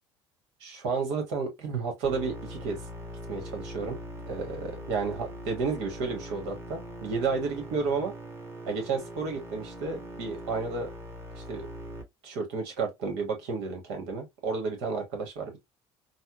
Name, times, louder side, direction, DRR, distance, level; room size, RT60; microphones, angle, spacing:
voice 1, 0.6-2.8 3.3-4.0 4.3-8.1 8.7-10.9 11.3-11.7 12.2-15.6, right 4 dB, 70° right, 1.4 m, -32 dB
sound 1, 2.0-12.0, equal, 20° right, 1.3 m, -41 dB
4.1 x 2.2 x 2.5 m
hypercardioid pair, 70°, 14 cm